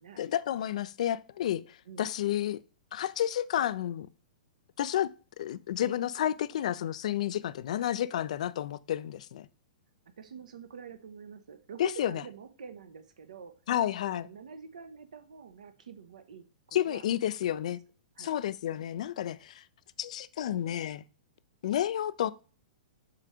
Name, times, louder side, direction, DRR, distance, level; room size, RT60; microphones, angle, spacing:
voice 1, 0.2-2.6 2.9-4.1 4.8-5.1 5.4-9.5 11.8-12.2 13.7-14.3 16.7-17.8 18.2-19.6 20.0-21.0 21.6-22.3, left 11 dB, 55° left, 0.4 m, -31 dB
voice 2, 10.2-13.6 14.0-17.0 17.5-17.7 18.2-18.4, right 7 dB, 65° right, 0.9 m, -47 dB
7.7 x 3.2 x 4.9 m
figure-of-eight pair, 105°, 4 cm